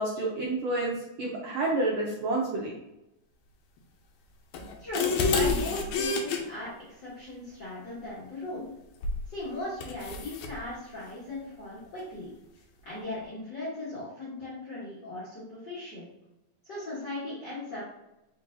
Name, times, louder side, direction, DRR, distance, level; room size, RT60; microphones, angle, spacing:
voice 1, 0.0-2.7, right 2 dB, 85° right, -3 dB, 1.3 m, -29 dB
sound 1, 4.5-6.4 9.0-9.3 9.8-10.5, left 4 dB, 80° left, 1.6 m, -28 dB
voice 2, 4.8-8.7 9.3-12.3 12.8-16.1 16.6-17.9, left 2 dB, 55° left, -10 dB, 1.2 m, -38 dB
4.8 x 3.8 x 2.6 m, 0.91 s
omnidirectional pair, 3.8 m